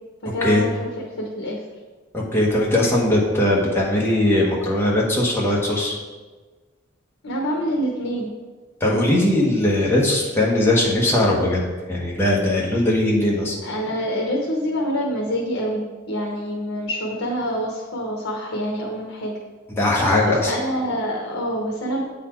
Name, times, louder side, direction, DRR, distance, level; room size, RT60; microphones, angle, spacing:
voice 1, 0.2-1.6 7.2-8.3 13.6-19.3 20.3-22.0, equal, 75° left, -1 dB, 1.0 m, -26 dB
voice 2, 2.1-5.9 8.8-11.6 11.9-13.6 19.8-20.5, left 1 dB, 10° left, -4 dB, 1.2 m, -19 dB
8.2 x 4.1 x 4.4 m, 1.3 s
head